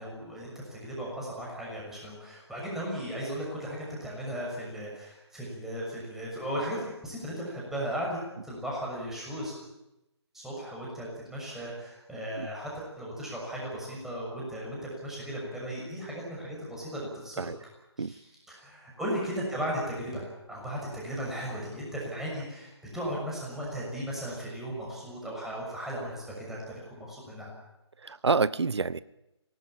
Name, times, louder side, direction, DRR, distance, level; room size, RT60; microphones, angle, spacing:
voice 1, 0.0-8.2 8.4-9.5 10.3-17.5 18.0-26.6 26.9-27.5, equal, 5° right, -4 dB, 6.4 m, -36 dB
voice 2, 28.0-29.0, right 4 dB, 70° right, 19 dB, 0.9 m, -27 dB
21.5 x 18.5 x 8.9 m, 0.93 s
figure-of-eight pair, 145°, 15 cm